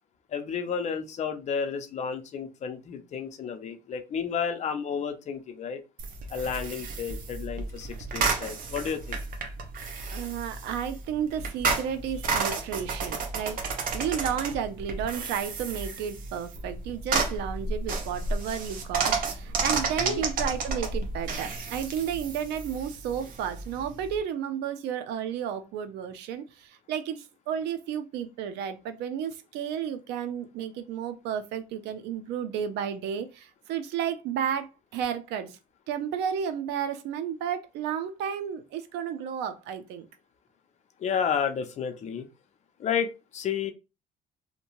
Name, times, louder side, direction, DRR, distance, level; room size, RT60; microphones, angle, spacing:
voice 1, 0.3-5.8 6.3-9.2 20.0-20.2 41.0-42.3 42.8-43.7, left 7 dB, 45° left, 0.5 m, -31 dB
sound 1, 6.0-24.2, right 4 dB, 55° right, 0.7 m, -32 dB
voice 2, 10.1-13.6 13.9-34.7 34.9-35.6 35.9-40.1, right 8 dB, 85° right, 0.5 m, -32 dB
2.7 x 2.2 x 2.9 m
cardioid pair, 110°, 17 cm